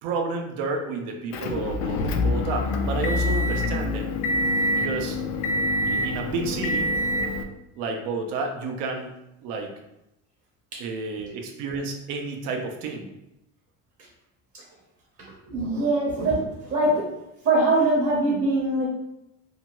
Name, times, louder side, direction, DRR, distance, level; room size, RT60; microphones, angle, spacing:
voice 1, 0.0-4.1 4.7-5.2 5.8-6.9 7.8-9.1 9.4-9.7 10.8-13.1, right 4 dB, 85° right, 4 dB, 0.6 m, -30 dB
Motor vehicle (road) / Engine, 1.3-7.4, left 1 dB, 70° left, 0.5 m, -25 dB
voice 2, 15.4-17.1 17.4-18.9, right 2 dB, 45° right, -4 dB, 0.8 m, -23 dB
2.8 x 2.2 x 2.9 m, 0.88 s
cardioid pair, 115°, 33 cm